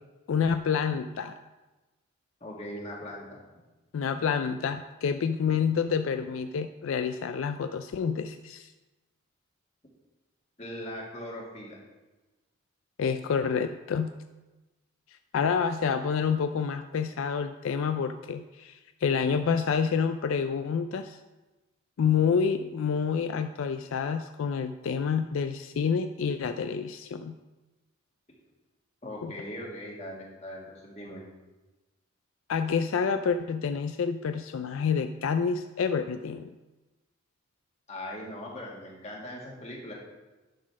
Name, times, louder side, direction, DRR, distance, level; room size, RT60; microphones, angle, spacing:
voice 1, 0.3-1.3 3.9-8.7 13.0-14.1 15.3-21.2 22.0-27.4 29.2-29.3 32.5-36.5, left 6 dB, 75° left, 9 dB, 0.3 m, -28 dB
voice 2, 2.4-3.4 10.6-11.8 29.0-31.2 37.9-39.9, left 1 dB, 30° left, -3 dB, 1.9 m, -40 dB
10.0 x 4.1 x 6.0 m, 1.1 s
head